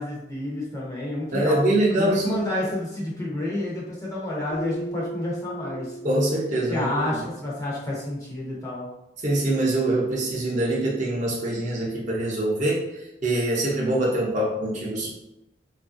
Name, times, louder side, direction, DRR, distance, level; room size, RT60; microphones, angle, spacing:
voice 1, 0.0-1.6 2.0-6.0 6.7-8.9, left 1 dB, 20° left, -5 dB, 0.6 m, -29 dB
voice 2, 1.3-2.4 6.0-7.2 9.2-12.9 13.2-15.1, right 1 dB, 40° right, -5 dB, 0.6 m, -24 dB
Keyboard (musical), 4.5-7.3, right 1 dB, 60° left, 0.8 m, -37 dB
2.9 x 2.4 x 2.4 m, 0.89 s
head